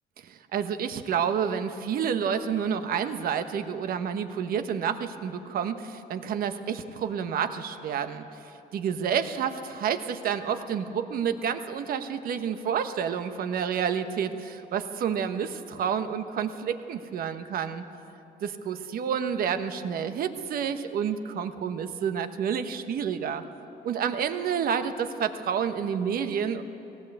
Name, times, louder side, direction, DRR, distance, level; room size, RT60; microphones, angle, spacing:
voice 1, 0.2-8.2 8.7-17.8 18.4-23.4 23.8-26.6, right 7 dB, 60° right, 9 dB, 1.3 m, -29 dB
19.0 x 17.5 x 8.1 m, 3.0 s
cardioid pair, 110°, 17 cm